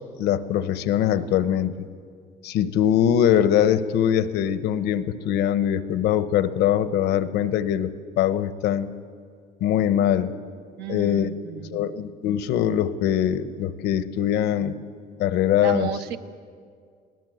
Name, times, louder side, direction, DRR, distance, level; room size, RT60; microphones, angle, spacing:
voice 1, 0.2-1.7 2.4-7.9 8.2-8.9 9.6-10.3 10.9-11.3 11.7-14.8 15.2-15.9, left 10 dB, 85° left, 13 dB, 1.0 m, -22 dB
voice 2, 10.8-11.9 15.6-16.2, right 8 dB, 75° right, 8 dB, 1.2 m, -32 dB
22.0 x 18.0 x 7.9 m, 2.1 s
cardioid pair, 110°, 17 cm